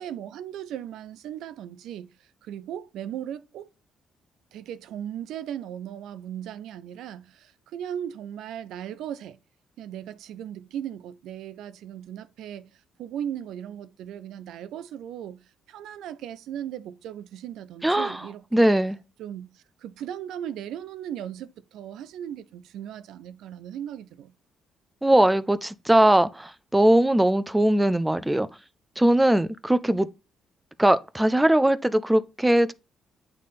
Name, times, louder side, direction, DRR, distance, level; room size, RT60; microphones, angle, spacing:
voice 1, 0.0-3.7 4.5-9.4 9.8-18.8 19.2-24.3, right 10 dB, 85° right, 0.4 m, -37 dB
voice 2, 17.8-18.2 18.5-19.0 25.0-28.5 29.0-30.1 30.8-32.7, right 1 dB, 10° right, 0.4 m, -20 dB
8.4 x 3.2 x 4.1 m
cardioid pair, 90°, 0 cm